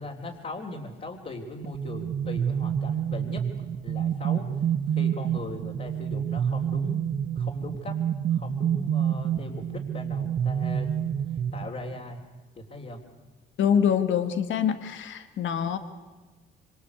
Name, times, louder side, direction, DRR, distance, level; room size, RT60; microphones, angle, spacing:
voice 1, 0.0-4.5 4.9-7.1 7.4-8.0 8.3-10.9 11.3-12.2 12.6-13.0, left 2 dB, 40° left, -2 dB, 3.7 m, -39 dB
sound 1, 1.6-12.1, right 8 dB, 50° right, 1.1 m, -28 dB
voice 2, 13.6-15.8, left 8 dB, 75° left, 9 dB, 1.7 m, -25 dB
25.5 x 25.5 x 8.4 m, 1.3 s
cardioid pair, 90°, 20 cm